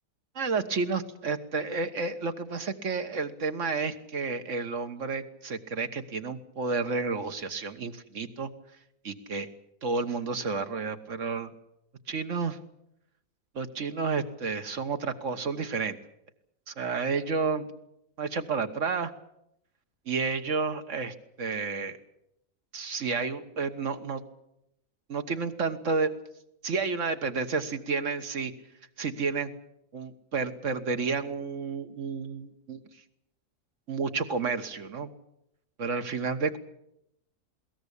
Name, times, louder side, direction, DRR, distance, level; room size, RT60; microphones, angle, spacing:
voice 1, 0.3-8.5 9.0-9.5 9.8-11.5 12.1-12.6 13.5-16.0 16.7-17.7 18.2-19.1 20.1-22.0 22.7-24.2 25.1-26.1 26.6-28.5 29.0-29.5 29.9-32.8 33.9-35.1 35.8-36.6, right 4 dB, 55° right, 8 dB, 1.7 m, -31 dB
21.5 x 18.0 x 8.4 m, 0.80 s
omnidirectional pair, 1.5 m